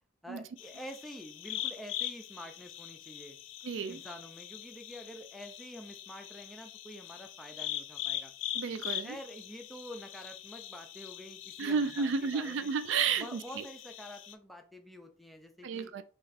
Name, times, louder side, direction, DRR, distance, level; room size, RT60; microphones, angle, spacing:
voice 1, 0.2-3.4 3.8-8.3 9.0-12.7 13.2-15.9, equal, ahead, 0.5 m, -48 dB
sound 1, 0.6-14.3, left 12 dB, 85° left, 0.4 m, -42 dB
voice 2, 3.6-4.0 8.5-9.2 11.6-13.6 15.6-16.0, right 5 dB, 70° right, 0.4 m, -32 dB
3.2 x 2.5 x 4.0 m
head